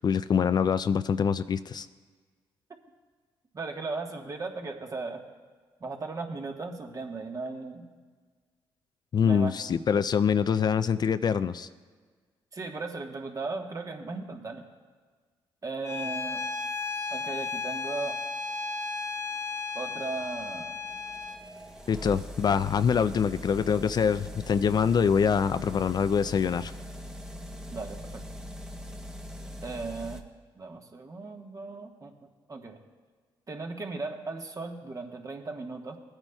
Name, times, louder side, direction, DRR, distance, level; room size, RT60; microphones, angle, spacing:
voice 1, 0.0-1.9 9.1-11.7 21.9-26.7, left 7 dB, 45° left, 13 dB, 0.3 m, -25 dB
voice 2, 3.5-5.2 5.8-7.9 9.2-9.5 12.5-14.7 15.6-16.4 17.1-18.2 19.7-20.8 27.7-28.3 29.6-30.2 30.6-32.2 32.5-32.8 33.5-36.0, right 3 dB, 35° right, 3 dB, 1.3 m, -37 dB
Bowed string instrument, 15.8-21.4, left 4 dB, 25° left, 1.2 m, -34 dB
sound 1, 19.9-30.2, equal, 5° right, 0.9 m, -42 dB
18.0 x 8.9 x 2.3 m, 1.5 s
cardioid pair, 65°, 10 cm